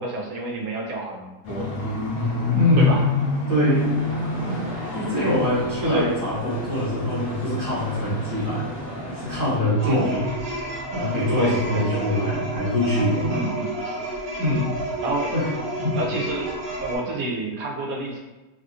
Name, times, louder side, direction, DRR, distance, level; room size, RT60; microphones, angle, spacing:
voice 1, 0.0-2.0 2.8-3.0 5.8-6.1 9.8-10.1 11.4-12.2 13.3-13.7 15.0-15.3 15.9-16.5 16.8-18.2, right 2 dB, 70° right, -1 dB, 0.9 m, -28 dB
sound 1, 1.4-6.0 6.4-11.6 11.9-12.2 12.5-12.6 13.0-13.1, left 3 dB, 65° left, 1.1 m, -29 dB
voice 2, 2.5-3.0 3.5-3.9 4.5-4.6 4.9-8.6 9.1-10.3 10.9-13.5 14.4-14.7 15.3-15.5 15.8-16.0, left 1 dB, 15° right, -11 dB, 1.1 m, -23 dB
sound 2, 3.7-9.6, equal, 30° left, 0.8 m, -35 dB
sound 3, 9.8-17.0, right 1 dB, 50° right, 1.1 m, -31 dB
3.3 x 2.6 x 2.4 m, 1.1 s
omnidirectional pair, 1.7 m